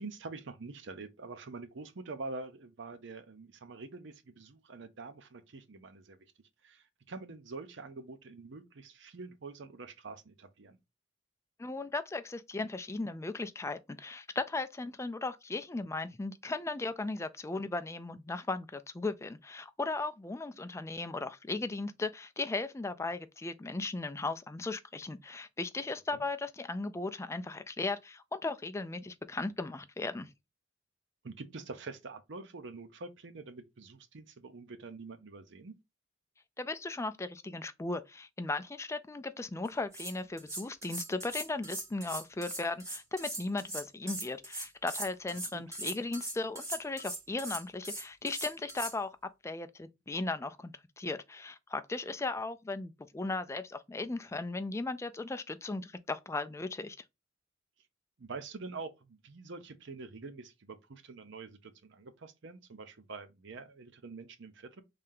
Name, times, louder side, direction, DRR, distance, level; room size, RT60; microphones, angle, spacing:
voice 1, 0.0-6.2 6.6-10.8 26.1-26.2 31.2-35.8 45.5-45.6 58.2-64.8, right 3 dB, 65° right, 0.7 m, -46 dB
voice 2, 11.6-30.3 36.6-49.1 49.4-57.0, left 3 dB, 15° left, 0.4 m, -37 dB
sound 1, 39.6-39.7 39.9-48.9, right 1 dB, 15° right, 1.5 m, -40 dB
3.3 x 2.8 x 3.7 m
head